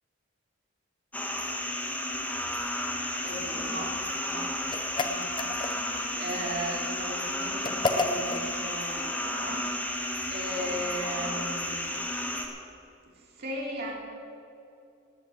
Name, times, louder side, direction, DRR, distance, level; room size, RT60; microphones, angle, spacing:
sound 1, 1.1-12.4, left 1 dB, 10° left, 1.3 m, -32 dB
voice 1, 3.2-4.0 4.3-4.5 5.0-12.0 13.2-13.9, right 1 dB, 50° right, -2 dB, 3.1 m, -37 dB
sound 2, 4.7-6.0 7.6-8.5, left 3 dB, 25° left, 0.7 m, -30 dB
18.0 x 8.1 x 7.9 m, 2.6 s
head